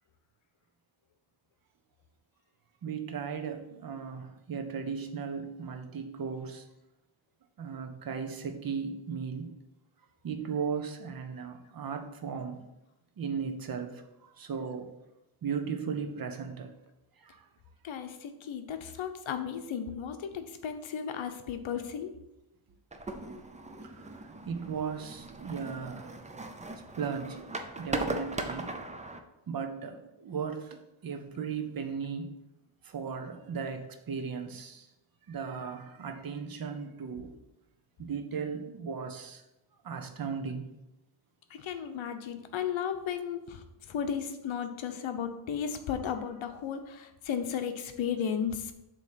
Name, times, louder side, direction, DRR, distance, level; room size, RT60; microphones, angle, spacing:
voice 1, 2.8-6.7 7.6-9.5 10.2-12.6 13.2-14.9 15.4-16.7 17.2-17.5 23.8-26.3 27.0-27.5 27.8-28.7 29.5-32.3 32.8-34.9 35.3-37.3 38.0-39.4 39.8-40.7, right 6 dB, 45° right, 5 dB, 0.8 m, -37 dB
voice 2, 17.8-22.1 41.5-48.7, left 8 dB, 70° left, 7 dB, 0.9 m, -34 dB
sound 1, 22.9-29.2, right 2 dB, 15° right, 0.4 m, -38 dB
7.6 x 3.0 x 5.7 m, 0.91 s
wide cardioid pair, 150°, 49 cm